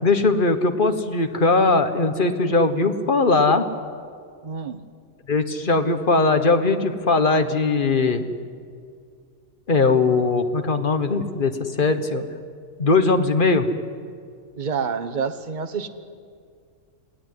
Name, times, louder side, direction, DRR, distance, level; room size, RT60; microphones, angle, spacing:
voice 1, 0.0-3.6 5.3-8.2 9.7-12.2 12.8-13.7, left 3 dB, 40° left, 8 dB, 1.4 m, -20 dB
voice 2, 4.4-4.8 14.6-15.9, right 6 dB, 35° right, 9 dB, 1.2 m, -28 dB
28.0 x 18.0 x 9.6 m, 2.2 s
omnidirectional pair, 1.4 m